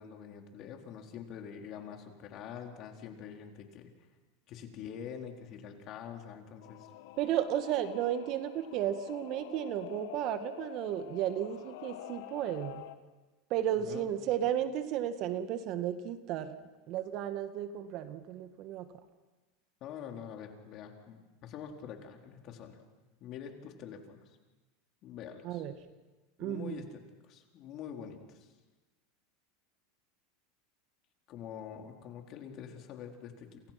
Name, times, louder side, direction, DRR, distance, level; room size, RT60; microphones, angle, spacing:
voice 1, 0.0-3.9 4.5-6.9 13.7-14.4 19.8-22.8 23.2-24.4 25.0-25.7 26.4-28.5 31.3-33.6, left 8 dB, 45° left, 3 dB, 4.2 m, -45 dB
Singing / Musical instrument, 6.6-13.0, left 13 dB, 70° left, 1.4 m, -48 dB
voice 2, 7.2-12.8 13.5-16.6 16.9-18.9 25.4-25.7 26.4-26.8, right 10 dB, 50° right, 9 dB, 2.0 m, -33 dB
29.5 x 28.0 x 6.1 m, 1.2 s
supercardioid pair, 115°, 0 cm